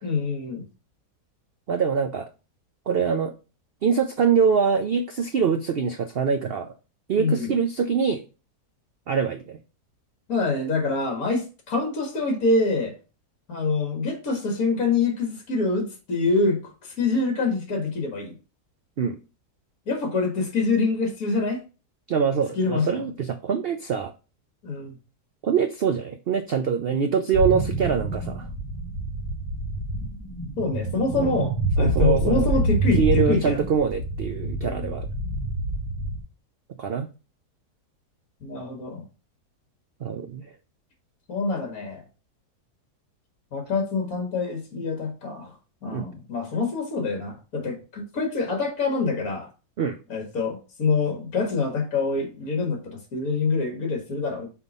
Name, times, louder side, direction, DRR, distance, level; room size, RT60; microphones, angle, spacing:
voice 1, 0.0-0.7 7.2-7.5 10.3-13.0 13.5-18.3 19.9-21.6 22.6-23.0 24.6-24.9 30.6-33.6 34.6-35.0 38.4-39.0 41.3-42.0 43.5-45.5 45.8-49.5 50.1-54.5, left 3 dB, 60° left, 2.1 m, -25 dB
voice 2, 1.7-2.3 2.9-3.3 3.8-6.7 7.1-8.2 9.1-9.6 19.0-19.2 22.1-24.1 25.4-28.5 31.2-31.3 31.8-32.5 33.0-35.1 36.8-37.1 40.0-40.5 45.9-46.0 49.8-50.0, right 6 dB, 75° right, 0.5 m, -24 dB
sound 1, 27.3-36.2, right 1 dB, 15° left, 1.5 m, -27 dB
5.8 x 4.2 x 5.4 m
omnidirectional pair, 1.7 m